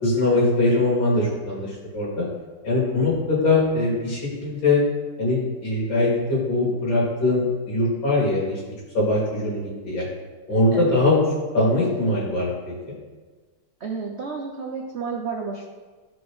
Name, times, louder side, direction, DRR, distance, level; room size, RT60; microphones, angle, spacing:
voice 1, 0.0-2.3 2.6-4.8 5.2-8.6 8.9-10.0 10.5-11.3 11.5-12.6, left 2 dB, 75° left, -6 dB, 3.3 m, -22 dB
voice 2, 13.8-15.6, right 5 dB, 80° right, 1 dB, 0.6 m, -31 dB
13.0 x 4.9 x 3.2 m, 1.3 s
omnidirectional pair, 2.1 m